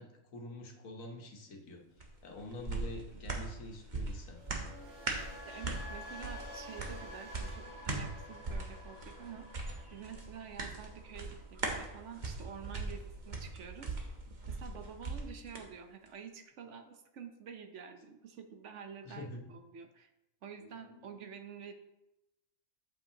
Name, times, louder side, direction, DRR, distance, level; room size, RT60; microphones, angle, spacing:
voice 1, 0.0-4.4 19.0-19.5 20.6-21.2, left 1 dB, 90° left, 2 dB, 1.4 m, -47 dB
sound 1, 2.0-15.7 16.1-16.2, right 3 dB, 40° right, 1.1 m, -41 dB
sound 2, 4.4-12.5 12.7-13.1, left 1 dB, 85° right, 2.1 m, -51 dB
voice 2, 5.5-9.6 9.9-14.0 14.5-20.1 20.4-21.7, right 7 dB, 65° right, 6 dB, 1.0 m, -49 dB
8.0 x 7.2 x 2.8 m, 0.91 s
omnidirectional pair, 1.4 m